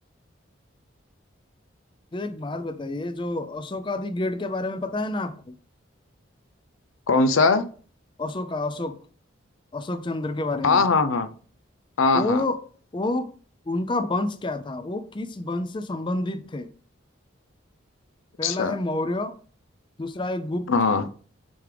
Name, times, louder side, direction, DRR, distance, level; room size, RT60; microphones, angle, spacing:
voice 1, 2.1-5.6 8.2-9.0 9.7-10.8 12.1-12.6 12.9-13.3 13.7-16.7 18.4-19.4 20.0-20.7, left 2 dB, 25° left, 0.4 m, -28 dB
voice 2, 7.1-7.6 10.6-11.3 12.0-12.4 18.4-18.8 20.7-21.0, left 4 dB, 90° left, 0.6 m, -20 dB
7.7 x 3.7 x 3.4 m
head